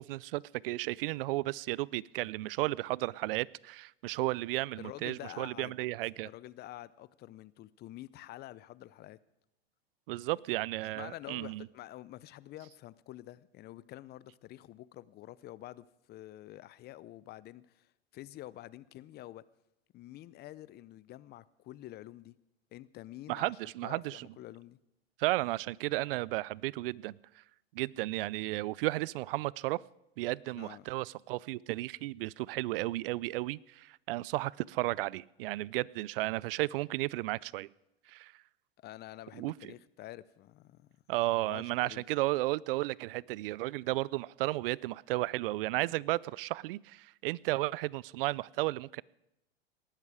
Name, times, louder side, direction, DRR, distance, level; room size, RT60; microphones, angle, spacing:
voice 1, 0.0-6.3 10.1-11.7 23.3-24.3 25.2-27.2 27.7-29.8 30.2-37.7 38.1-38.3 39.3-39.7 41.1-49.0, right 19 dB, 65° right, 25 dB, 0.5 m, -33 dB
voice 2, 4.7-5.8 6.2-9.2 10.9-19.4 19.9-22.4 22.7-24.8 30.5-30.8 38.8-40.9 41.4-42.0, left 15 dB, 35° left, 19 dB, 0.6 m, -48 dB
19.0 x 12.5 x 4.9 m, 0.87 s
hypercardioid pair, 105°, 31 cm